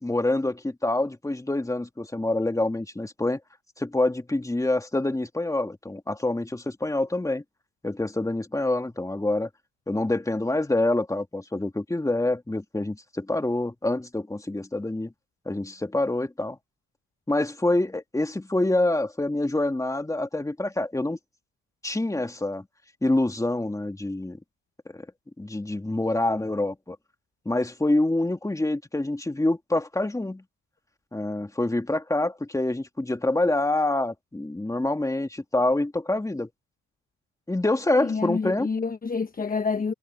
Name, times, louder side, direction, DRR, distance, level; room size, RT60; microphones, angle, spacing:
voice 1, 0.0-3.4 3.8-7.4 7.8-9.5 9.9-15.1 15.5-16.6 17.3-21.2 21.8-22.6 23.0-24.4 24.9-25.0 25.4-27.0 27.5-30.4 31.1-36.5 37.5-38.7, left 2 dB, 10° left, 2.6 m, -26 dB
voice 2, 38.0-39.9, left 5 dB, 30° left, 1.1 m, -28 dB
cardioid pair, 90°, 30 cm